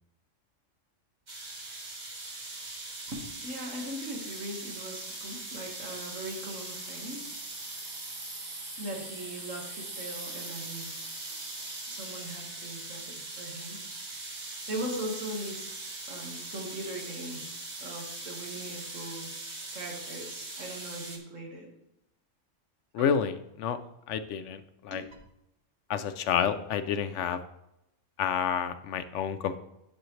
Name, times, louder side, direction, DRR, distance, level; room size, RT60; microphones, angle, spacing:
sound 1, 1.3-21.2, right 2 dB, 35° right, 1.2 m, -41 dB
voice 1, 3.1-7.3 8.8-11.2 11.9-13.8 14.7-15.8 16.1-17.4 17.8-19.3 19.7-21.7 23.0-23.1 24.9-25.0, right 1 dB, 80° right, 0 dB, 2.0 m, -40 dB
voice 2, 22.9-23.8 24.1-25.0 25.9-27.4 28.2-29.6, left 8 dB, 70° left, 11 dB, 0.9 m, -29 dB
10.5 x 6.3 x 3.2 m, 0.84 s
omnidirectional pair, 1.3 m